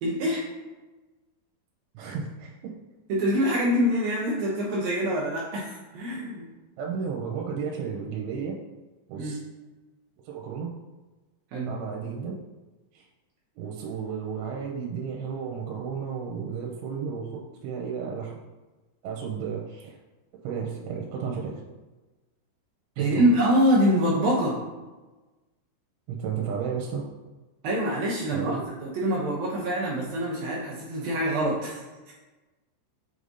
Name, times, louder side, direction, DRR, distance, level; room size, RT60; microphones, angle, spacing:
voice 1, 0.0-0.4 3.1-6.4 9.2-9.4 11.5-11.8 23.0-24.6 27.6-28.5 28.8-32.1, equal, 70° right, -6 dB, 2.3 m, -25 dB
voice 2, 1.9-2.7 6.8-8.5 9.1-9.4 10.3-10.7 11.7-12.3 12.9-13.1 13.6-18.3 19.0-19.9 20.4-21.6 23.0-23.3 26.1-27.0 28.3-28.6, right 6 dB, 90° right, -2 dB, 3.1 m, -33 dB
8.0 x 4.9 x 2.7 m, 1.2 s
omnidirectional pair, 5.4 m